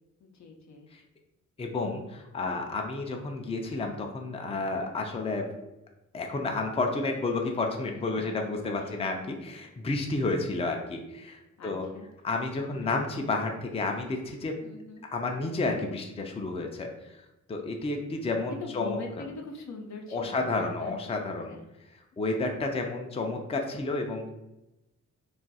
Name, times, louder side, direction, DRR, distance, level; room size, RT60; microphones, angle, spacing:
voice 1, 0.2-1.0 7.9-8.4 8.8-9.0 11.6-12.1 14.6-15.1 18.5-20.9 21.4-21.6 24.0-24.3, left 3 dB, 65° left, 2 dB, 0.6 m, -43 dB
voice 2, 1.6-5.5 6.1-11.9 12.2-14.6 15.1-17.2 17.5-19.0 20.1-21.6 22.2-24.3, left 3 dB, 20° left, 3 dB, 0.4 m, -31 dB
2.4 x 2.2 x 4.0 m, 0.95 s
cardioid pair, 70°, 30 cm